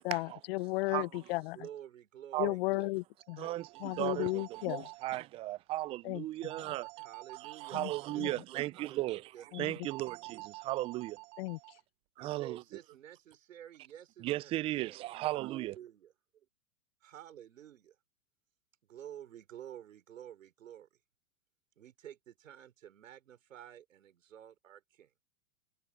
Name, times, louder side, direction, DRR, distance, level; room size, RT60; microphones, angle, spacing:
voice 1, 0.0-1.6 2.4-3.5 3.8-4.9 6.0-6.5 7.7-7.9 8.2-8.3 9.5-9.7 11.4-11.6, left 23 dB, 50° left, 0.8 m, -34 dB
voice 2, 1.5-2.9 3.4-3.6 7.0-9.5 12.2-15.1 15.3-16.5 17.0-18.0 18.8-21.0 21.8-25.1, right 10 dB, 80° right, 4.0 m, -51 dB
sound 1, 3.2-5.2 6.4-8.4 9.8-11.8, right 27 dB, 40° right, 0.9 m, -49 dB
voice 3, 4.0-6.9 7.7-9.2 9.6-11.2 12.2-12.6 14.2-15.7, right 17 dB, 15° right, 0.3 m, -36 dB
hypercardioid pair, 120°, 38 cm